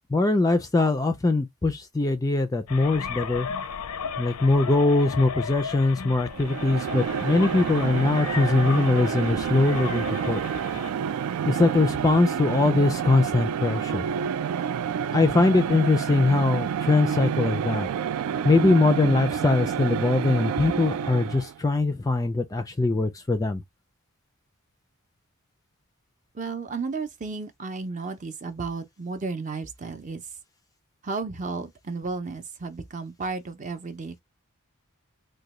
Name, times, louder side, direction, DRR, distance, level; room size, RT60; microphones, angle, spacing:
voice 1, 0.1-3.5 4.2-10.4 11.5-14.1 15.1-17.9 18.4-23.6, left 2 dB, 15° left, 0.3 m, -22 dB
sound 1, 2.7-10.9, left 6 dB, 90° left, 0.5 m, -35 dB
sound 2, 6.3-21.6, right 8 dB, 85° right, 0.3 m, -29 dB
voice 2, 26.3-30.4 31.0-34.2, right 4 dB, 35° right, 0.5 m, -33 dB
3.8 x 2.2 x 3.0 m
head